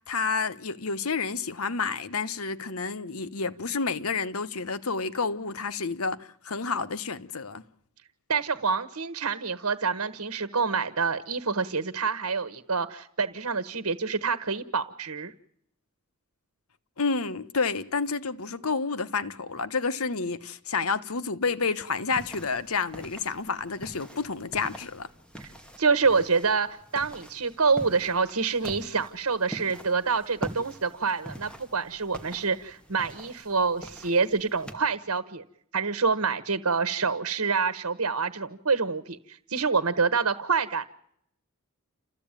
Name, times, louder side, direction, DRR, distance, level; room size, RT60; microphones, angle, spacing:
voice 1, 0.0-7.6 17.0-25.1, left 4 dB, 80° left, 1.2 m, -30 dB
voice 2, 8.3-15.3 25.4-25.5 25.8-35.4 35.7-40.9, right 5 dB, 85° right, 1.3 m, -27 dB
sound 1, 22.1-34.7, equal, 5° left, 2.3 m, -44 dB
28.5 x 14.5 x 9.0 m
head